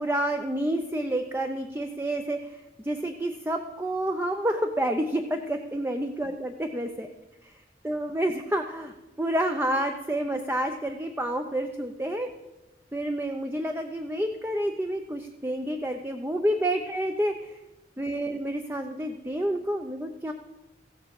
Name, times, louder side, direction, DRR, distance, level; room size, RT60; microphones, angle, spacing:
voice 1, 0.0-2.6 2.8-7.1 7.8-12.3 12.9-17.6 18.0-20.3, right 1 dB, 10° right, 5 dB, 0.6 m, -29 dB
15.0 x 7.3 x 7.6 m, 1.1 s
head